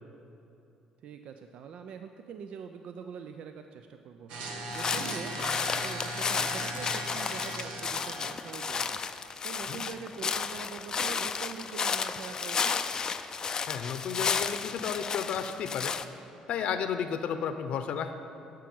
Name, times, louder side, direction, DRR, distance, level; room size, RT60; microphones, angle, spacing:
voice 1, 1.0-12.8, right 6 dB, 65° right, 7 dB, 0.5 m, -44 dB
sound 1, 4.3-9.3, right 1 dB, 85° right, 1.4 m, -39 dB
sound 2, 4.7-16.1, left 6 dB, 35° left, 0.4 m, -32 dB
voice 2, 13.7-16.0 16.5-18.1, left 7 dB, 65° left, 9 dB, 0.7 m, -32 dB
11.5 x 6.2 x 7.7 m, 2.9 s
cardioid pair, 125°, 2 cm